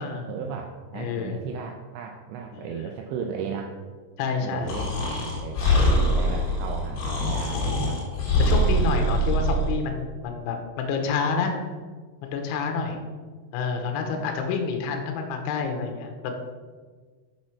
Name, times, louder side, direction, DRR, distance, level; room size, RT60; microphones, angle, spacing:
voice 1, 0.0-3.8 4.4-8.0 12.7-13.1 13.9-14.3, right 7 dB, 90° right, 2 dB, 2.5 m, -35 dB
voice 2, 0.9-1.4 2.5-2.9 4.2-4.8 8.4-11.5 12.2-13.0 13.5-16.3, left 5 dB, 80° left, 4 dB, 2.9 m, -28 dB
Breathing, 4.7-9.8, equal, 65° left, 2.8 m, -23 dB
7.4 x 4.3 x 4.7 m, 1.5 s
omnidirectional pair, 5.8 m